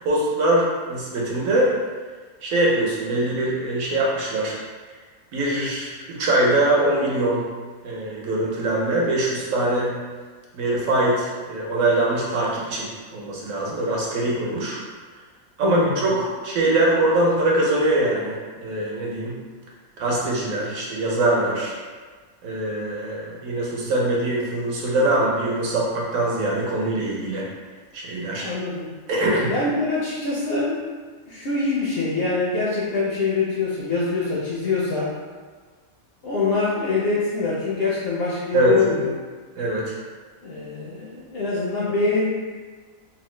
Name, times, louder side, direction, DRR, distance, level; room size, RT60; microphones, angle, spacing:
voice 1, 0.0-1.7 2.4-4.6 5.3-7.4 7.8-9.9 10.5-14.8 15.6-19.4 20.0-21.7 22.4-27.5 27.9-28.5 29.1-29.5 38.5-38.8 39.6-39.9, right 1 dB, 75° right, -4 dB, 1.1 m, -22 dB
voice 2, 15.6-16.0 28.4-28.9 29.5-30.9 31.3-35.1 36.2-39.1 40.4-42.2, left 3 dB, 65° left, -7 dB, 0.6 m, -24 dB
3.1 x 2.0 x 3.1 m, 1.4 s
omnidirectional pair, 1.5 m